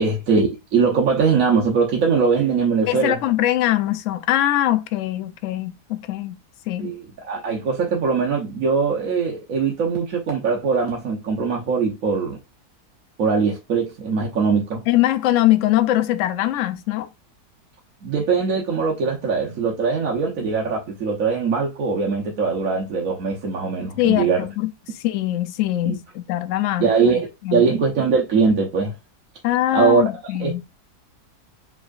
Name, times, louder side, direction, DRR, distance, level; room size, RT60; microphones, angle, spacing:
voice 1, 0.0-3.2 6.8-12.4 13.2-14.9 18.0-24.4 25.8-26.0 26.8-28.9 29.7-30.0 30.4-30.6, right 5 dB, 60° right, 1.2 m, -21 dB
voice 2, 2.9-6.4 6.7-6.9 14.9-17.1 24.0-27.8 29.4-30.6, left 14 dB, 70° left, 0.7 m, -22 dB
4.9 x 3.6 x 2.4 m
omnidirectional pair, 1.7 m